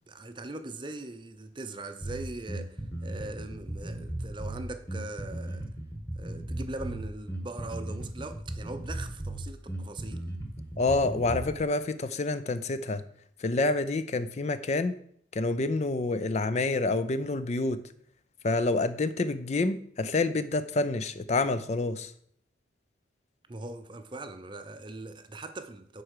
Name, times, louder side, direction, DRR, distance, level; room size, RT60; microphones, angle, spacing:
voice 1, 0.0-5.7 6.1-10.3 23.5-26.0, right 2 dB, 25° right, 0.6 m, -41 dB
Bass guitar, 2.0-11.6, right 1 dB, 10° left, 1.4 m, -37 dB
voice 2, 10.8-13.0 13.4-14.9 15.3-17.8 18.4-22.1, left 3 dB, 35° left, 0.4 m, -28 dB
7.7 x 4.7 x 6.5 m
head